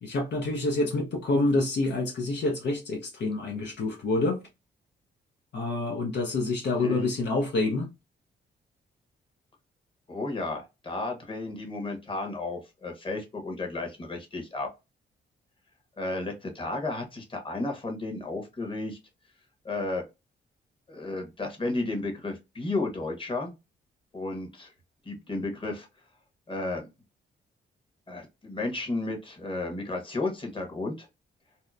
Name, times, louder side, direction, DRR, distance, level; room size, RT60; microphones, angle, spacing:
voice 1, 0.0-4.4 5.5-7.9, left 2 dB, 65° left, 0.7 m, -27 dB
voice 2, 6.8-7.1 10.1-14.7 16.0-19.0 19.6-20.1 20.9-23.5 24.1-24.7 25.0-25.9 26.5-26.8 28.1-31.1, left 2 dB, 25° left, 1.1 m, -33 dB
2.8 x 2.1 x 2.4 m
cardioid pair, 65°, 20 cm